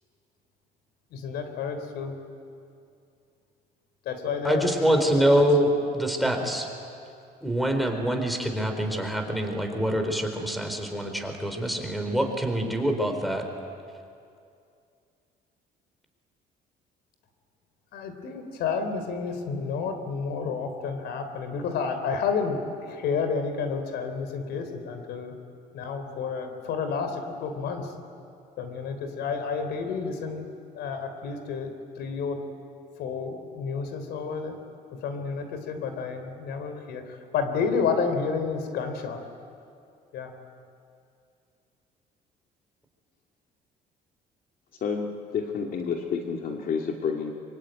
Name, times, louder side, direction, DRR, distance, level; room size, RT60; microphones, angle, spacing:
voice 1, 1.1-2.2 4.1-5.6 6.2-6.5 17.9-25.4 25.7-27.9 28.6-30.5 30.7-32.4 33.0-34.6 34.9-39.2 40.1-40.3, left 5 dB, 80° left, 7 dB, 3.5 m, -30 dB
voice 2, 4.4-6.7 7.4-13.4, right 1 dB, ahead, 5 dB, 4.0 m, -25 dB
voice 3, 44.8-47.3, left 6 dB, 55° left, 1 dB, 2.3 m, -29 dB
24.5 x 24.5 x 9.2 m, 2.4 s
cardioid pair, 110°, 17 cm